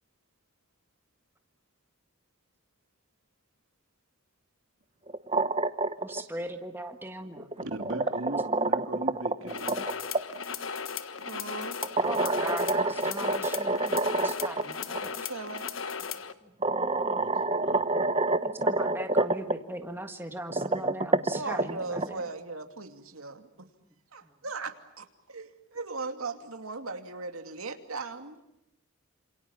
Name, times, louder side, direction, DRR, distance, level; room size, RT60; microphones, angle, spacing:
sound 1, 5.1-6.2 7.4-10.2 11.8-14.6 14.9-15.0 16.1-16.2 16.6-19.5 20.4-22.1, right 2 dB, 25° right, 1.0 m, -27 dB
voice 1, 6.0-7.5 12.0-15.3 18.4-22.2 24.2-24.3, right 1 dB, 10° right, 6 dB, 1.6 m, -39 dB
voice 2, 7.6-9.8 17.1-17.8, right 1 dB, 65° right, 6 dB, 2.8 m, -39 dB
sound 2, 9.5-16.3, left 6 dB, 70° left, 1.4 m, -36 dB
voice 3, 11.3-11.8 15.2-15.7 21.3-23.5 24.1-28.4, right 3 dB, 85° right, 6 dB, 2.7 m, -38 dB
28.5 x 27.5 x 7.2 m, 0.85 s
head